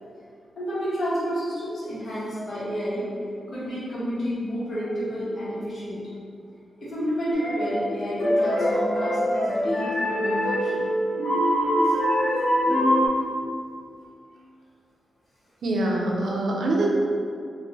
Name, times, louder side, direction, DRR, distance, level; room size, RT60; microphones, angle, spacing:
voice 1, 0.6-3.1 3.5-6.0 6.8-10.9 11.8-11.9, equal, 50° left, -10 dB, 1.2 m, -30 dB
sound 1, 7.3-7.7 8.2-13.1, equal, 85° left, 0.8 m, -23 dB
voice 2, 15.6-16.9, right 2 dB, 75° right, -2 dB, 0.5 m, -24 dB
2.7 x 2.6 x 3.0 m, 2.3 s
wide cardioid pair, 130°, 0 cm